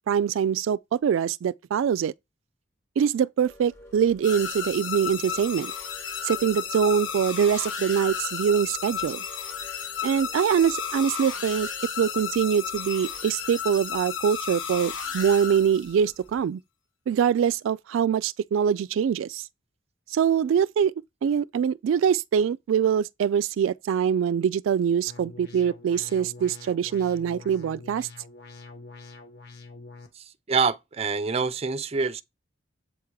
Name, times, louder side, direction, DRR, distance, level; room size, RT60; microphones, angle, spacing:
voice 1, 0.1-2.1 3.0-5.7 6.2-9.2 10.0-11.7 12.0-16.6 17.1-19.5 20.1-20.9 21.2-28.1, right 8 dB, 90° right, 0.3 m, -24 dB
sound 1, 3.4-16.4, left 1 dB, 15° left, 1.1 m, -53 dB
sound 2, 4.2-16.1, left 7 dB, 80° left, 1.2 m, -33 dB
sound 3, 25.1-30.1, left 3 dB, 60° left, 1.5 m, -45 dB
voice 2, 30.2-32.2, right 5 dB, 30° right, 0.5 m, -26 dB
8.1 x 3.6 x 4.6 m
head